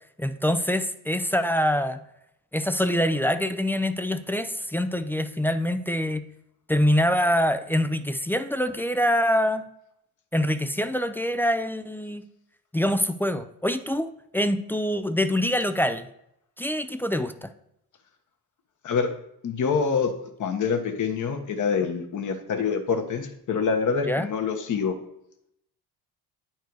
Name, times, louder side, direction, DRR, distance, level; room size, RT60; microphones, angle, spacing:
voice 1, 0.2-2.0 2.5-6.2 6.7-9.7 10.3-12.2 12.7-16.1 16.6-17.5 24.1-24.3, equal, 5° left, 11 dB, 0.3 m, -25 dB
voice 2, 19.4-20.1 20.4-25.0, left 5 dB, 50° left, 7 dB, 1.2 m, -26 dB
9.2 x 4.5 x 4.7 m, 0.79 s
cardioid pair, 100°, 40 cm